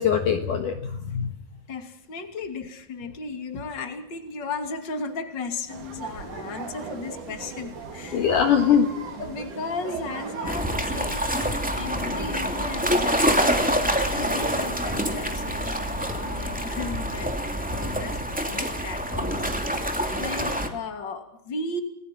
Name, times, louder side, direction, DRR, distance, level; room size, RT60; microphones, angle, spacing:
voice 1, 0.0-1.3 8.1-8.9, left 8 dB, 60° left, 5 dB, 2.7 m, -22 dB
voice 2, 1.7-8.4 9.2-17.3 17.6-21.8, left 3 dB, 30° left, 6 dB, 2.9 m, -36 dB
sound 1, 5.7-11.1, right 4 dB, 55° right, 4.4 m, -37 dB
sound 2, 10.4-20.7, equal, 5° right, 1.6 m, -26 dB
29.0 x 20.5 x 6.0 m, 0.76 s
omnidirectional pair, 4.5 m